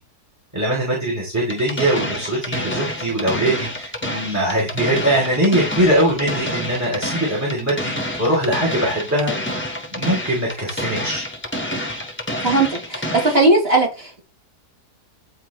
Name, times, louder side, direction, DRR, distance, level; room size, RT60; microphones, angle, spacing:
voice 1, 0.5-9.4 9.9-11.2, right 1 dB, 10° right, -3 dB, 2.8 m, -21 dB
sound 1, 1.5-13.5, left 1 dB, 10° left, 1.1 m, -28 dB
voice 2, 12.4-14.2, right 2 dB, 35° right, -3 dB, 3.4 m, -18 dB
9.8 x 4.5 x 3.0 m, 0.28 s
omnidirectional pair, 1.7 m